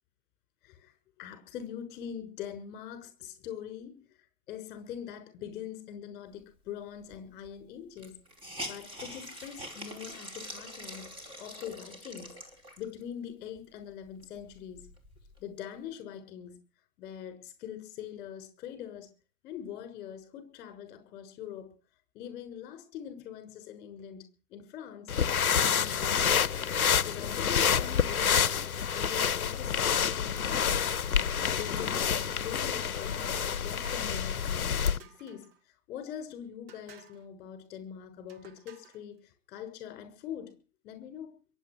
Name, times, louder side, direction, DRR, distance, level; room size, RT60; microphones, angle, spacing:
voice 1, 0.6-4.0 4.5-8.2 8.6-11.1 11.4-12.3 12.8-14.8 15.4-16.6 17.0-19.1 19.4-21.7 22.1-24.2 24.5-25.1 25.5-26.4 27.0-28.6 28.9-30.9 31.3-33.1 33.4-35.5 35.9-40.5 40.8-41.3, left 9 dB, 20° left, 8 dB, 6.1 m, -43 dB
Hiss, 7.1-7.2 7.4-7.5 8.0-13.0 13.6-13.7 14.0-15.4, equal, 10° right, 4.8 m, -44 dB
sound 1, 25.1-35.0, left 7 dB, 65° left, 0.9 m, -28 dB
sound 2, 33.3-34.3 35.0-35.6 36.7-37.3 38.3-39.0, right 7 dB, 40° right, 2.2 m, -54 dB
23.0 x 9.2 x 6.3 m, 0.39 s
figure-of-eight pair, 135°, 45 cm